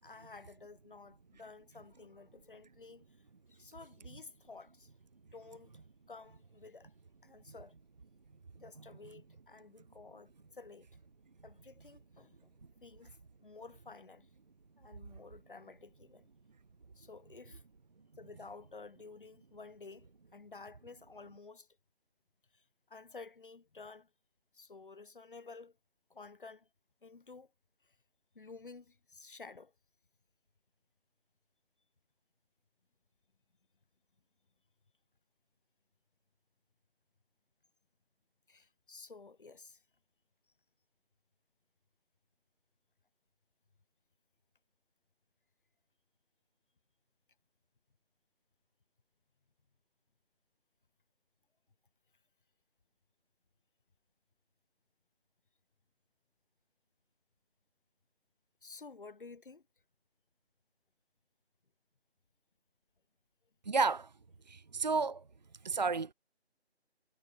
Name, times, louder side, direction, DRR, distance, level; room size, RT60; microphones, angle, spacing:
voice 1, 0.0-3.0 3.5-4.9 5.3-5.7 6.1-6.9 7.2-7.7 8.6-10.9 11.4-12.5 12.8-13.2 13.4-14.3 14.8-16.3 17.0-17.6 18.2-21.7 22.5-24.1 24.5-25.8 26.1-26.7 27.0-27.5 27.8-27.9 28.4-29.7 38.5-39.8 58.6-59.6, left 4 dB, 50° left, 5.4 m, -52 dB
voice 2, 63.7-64.1 64.5-65.2 65.6-66.1, right 4 dB, 40° right, 1.3 m, -31 dB
figure-of-eight pair, 170°, 33 cm